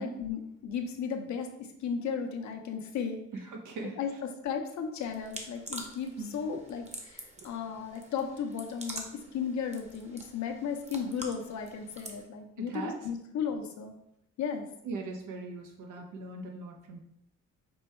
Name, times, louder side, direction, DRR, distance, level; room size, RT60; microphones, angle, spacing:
voice 1, 0.0-1.5 1.8-3.2 4.0-4.1 4.4-9.0 9.3-13.9 14.4-14.7, left 6 dB, 70° left, 5 dB, 0.8 m, -35 dB
voice 2, 3.3-4.2 6.2-6.3 7.4-7.5 12.6-13.1 14.8-17.0, right 3 dB, 80° right, 2 dB, 0.9 m, -40 dB
sound 1, 5.0-12.2, right 1 dB, 20° right, 0.9 m, -46 dB
5.4 x 2.2 x 4.3 m, 0.77 s
cardioid pair, 90°, 30 cm